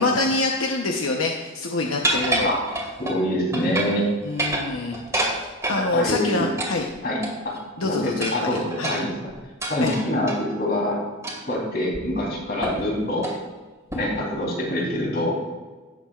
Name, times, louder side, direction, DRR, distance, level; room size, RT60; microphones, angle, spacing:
voice 1, 0.0-2.5 4.2-6.9 7.8-8.9 9.8-9.9, left 3 dB, 80° left, 1 dB, 0.9 m, -26 dB
sound 1, 2.0-3.2 3.5-4.0 4.3-5.8 6.6-7.6 8.2-10.4 11.2-11.5 11.9-12.0 12.6-12.9 13.2-13.4 13.9-14.2, right 1 dB, 15° right, 2.3 m, -28 dB
voice 2, 3.0-4.1 5.9-6.5 7.0-7.2 7.8-9.3 9.7-11.0 11.5-13.3 13.9-15.4, left 1 dB, 45° left, -3 dB, 3.5 m, -25 dB
17.5 x 7.4 x 2.4 m, 1.3 s
head